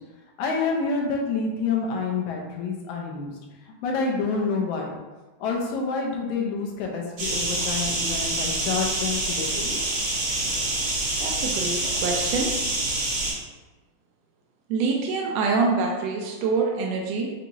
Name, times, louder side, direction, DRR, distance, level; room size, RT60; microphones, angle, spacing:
voice 1, 0.4-3.3 3.8-4.9 5.4-9.8, left 4 dB, 75° left, 0 dB, 2.0 m, -28 dB
sound 1, 7.2-13.3, right 2 dB, 55° right, 2.3 m, -26 dB
voice 2, 11.2-12.5 14.7-17.3, right 4 dB, 80° right, 0 dB, 1.5 m, -25 dB
5.4 x 2.6 x 2.9 m, 1.2 s
omnidirectional pair, 3.5 m